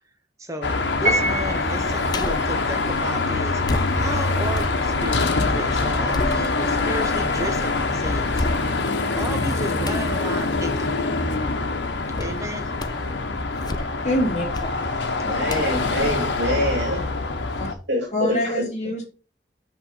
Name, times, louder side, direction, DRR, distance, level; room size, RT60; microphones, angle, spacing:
voice 1, 0.4-0.7 1.0-8.4 9.1-10.9 12.2-12.7, right 1 dB, 15° right, 6 dB, 1.0 m, -33 dB
Car passing by / Traffic noise roadway noise / Engine, 0.6-17.7, left 3 dB, 85° left, 1.2 m, -24 dB
Piano, 1.1-2.0, right 1 dB, 40° right, 3.4 m, -24 dB
sound 1, 2.1-2.6 3.6-5.4 5.8-6.9 7.4-7.5 8.3-9.0 9.8-10.1 12.2-12.4 12.8-13.1 13.5-14.1 14.5-14.8 15.5-17.1 17.5-17.6, left 2 dB, 20° left, 0.5 m, -33 dB
voice 2, 14.0-14.5 17.6-17.7 18.1-19.0, left 1 dB, 40° left, -1 dB, 3.0 m, -24 dB
voice 3, 15.2-17.0 17.9-18.6, equal, 80° right, -2 dB, 2.8 m, -25 dB
6.0 x 5.4 x 5.6 m, 0.36 s
head